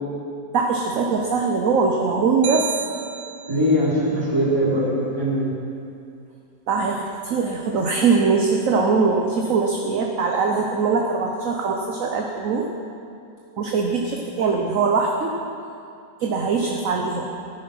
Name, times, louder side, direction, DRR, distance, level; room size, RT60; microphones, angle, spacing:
voice 1, 0.5-2.7 6.7-12.7 13.6-15.3 16.2-17.3, right 4 dB, 55° right, 1 dB, 1.2 m, -22 dB
sound 1, 2.4-3.8, right 10 dB, 85° right, 1.3 m, -32 dB
voice 2, 3.5-5.5, equal, 15° right, -9 dB, 4.2 m, -21 dB
17.0 x 10.0 x 5.5 m, 2.5 s
omnidirectional pair, 2.0 m